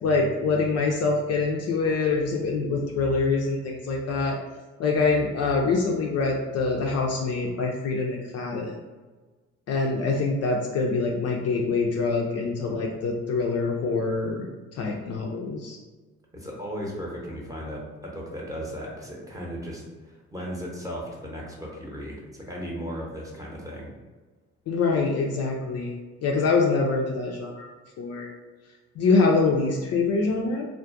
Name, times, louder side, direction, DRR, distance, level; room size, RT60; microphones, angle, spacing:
voice 1, 0.0-4.4 4.8-8.8 9.7-14.5 14.7-15.8 24.7-25.9 26.2-27.7 28.0-28.3 29.0-30.7, left 4 dB, 45° left, 0 dB, 0.4 m, -25 dB
voice 2, 16.3-19.8 20.1-23.9, equal, 10° right, -3 dB, 0.8 m, -36 dB
2.3 x 2.2 x 2.5 m, 1.3 s
hypercardioid pair, 50°, 36 cm